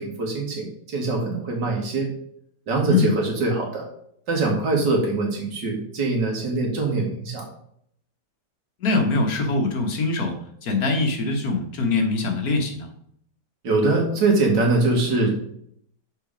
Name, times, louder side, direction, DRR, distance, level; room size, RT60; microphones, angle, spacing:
voice 1, 0.0-2.1 2.7-3.9 4.3-7.5 13.6-15.3, right 3 dB, 80° right, 1 dB, 2.3 m, -23 dB
voice 2, 8.8-10.4 10.6-12.9, left 3 dB, 60° left, 3 dB, 1.6 m, -23 dB
6.4 x 4.7 x 5.0 m, 0.67 s
omnidirectional pair, 1.9 m